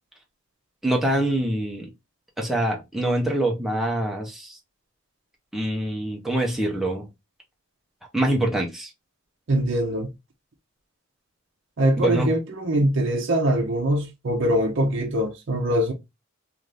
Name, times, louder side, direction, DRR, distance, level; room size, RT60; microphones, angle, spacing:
voice 1, 0.8-1.9 2.4-4.6 5.5-7.1 8.1-8.9 12.0-12.3, right 1 dB, ahead, 0.7 m, -25 dB
voice 2, 9.5-10.1 11.8-15.9, right 1 dB, 65° right, 0.6 m, -23 dB
2.5 x 2.5 x 3.2 m
head